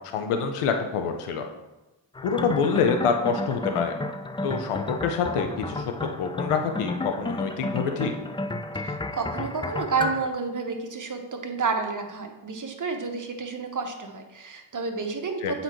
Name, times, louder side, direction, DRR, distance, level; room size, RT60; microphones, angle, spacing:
voice 1, 0.1-1.5 2.2-4.0 4.4-8.1 15.4-15.5, left 5 dB, 90° left, 5 dB, 0.7 m, -26 dB
sound 1, 2.2-10.3, left 2 dB, 10° left, 0.3 m, -32 dB
voice 2, 8.7-15.6, right 4 dB, 40° right, 4 dB, 1.1 m, -30 dB
7.6 x 5.1 x 3.1 m, 1.0 s
cardioid pair, 55°, 50 cm